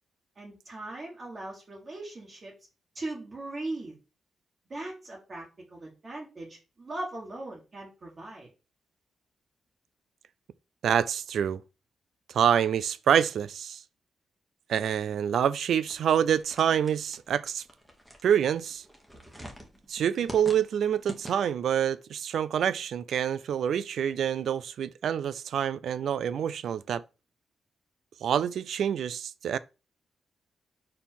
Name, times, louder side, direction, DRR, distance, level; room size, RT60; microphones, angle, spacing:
voice 1, 0.3-2.5 2.9-4.0 4.7-8.5, right 2 dB, 30° right, 1.6 m, -39 dB
voice 2, 10.8-11.6 12.3-13.8 14.7-17.6 18.2-18.8 19.9-27.0 28.2-29.6, right 9 dB, 65° right, 0.4 m, -27 dB
sound 1, 15.9-21.7, equal, 5° right, 1.1 m, -46 dB
5.4 x 4.5 x 4.4 m
wide cardioid pair, 180°, 0 cm